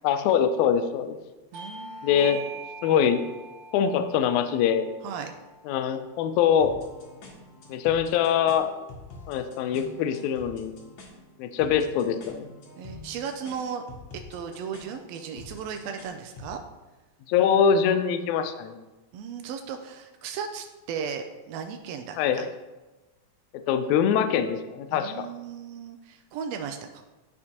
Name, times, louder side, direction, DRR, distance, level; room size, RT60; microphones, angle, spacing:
voice 1, 0.0-1.2 2.0-2.4 2.8-3.2 3.7-4.9 5.7-6.7 7.7-8.7 9.3-10.7 11.4-12.5 17.3-18.8 22.2-22.5 23.7-25.3, left 8 dB, 80° left, 8 dB, 1.8 m, -23 dB
Bell / Doorbell, 1.5-6.6, right 3 dB, 60° right, 2.2 m, -43 dB
voice 2, 1.5-2.3 5.0-5.3 12.8-13.8 14.1-16.6 19.1-22.4 24.9-27.0, right 7 dB, 85° right, 6 dB, 1.4 m, -36 dB
sound 1, 6.6-16.6, left 3 dB, 60° left, 1.3 m, -46 dB
11.0 x 4.3 x 2.8 m, 1.1 s
omnidirectional pair, 3.5 m